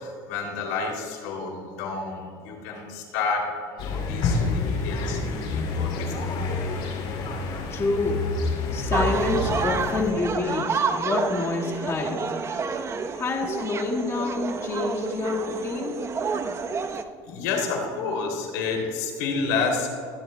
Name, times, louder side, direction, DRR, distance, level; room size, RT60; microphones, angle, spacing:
voice 1, 0.0-6.4 17.3-19.9, left 4 dB, 90° left, 1 dB, 2.8 m, -30 dB
sound 1, 3.8-10.1, left 3 dB, 60° left, 2.6 m, -28 dB
voice 2, 7.7-8.3 8.7-12.2 13.1-16.0, left 3 dB, 30° left, -1 dB, 1.7 m, -27 dB
sound 2, 8.9-17.0, right 5 dB, 30° right, 0.8 m, -29 dB
23.0 x 11.5 x 2.2 m, 2.2 s
supercardioid pair, 110°, 9 cm